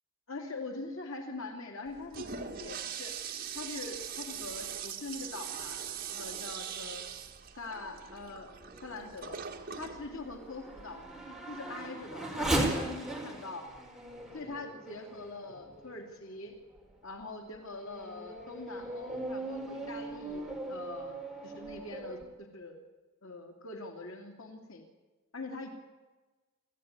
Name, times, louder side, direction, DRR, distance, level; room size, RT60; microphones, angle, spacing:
voice 1, 0.3-3.1 3.5-5.8 6.1-7.0 7.6-8.5 8.8-9.4 9.7-11.0 11.5-13.7 14.3-16.5 17.0-20.4 20.7-21.2 21.4-22.8 23.2-24.8 25.3-25.7, left 3 dB, 80° left, 3 dB, 3.0 m, -43 dB
Toilet flush, 1.9-11.3, right 7 dB, 45° right, 2.2 m, -42 dB
Race car auto racing / Accelerating revving vroom, 8.2-16.2 16.8-16.9 17.5-22.2, right 1 dB, ahead, 4.3 m, -38 dB
26.5 x 15.5 x 9.7 m, 1.2 s
head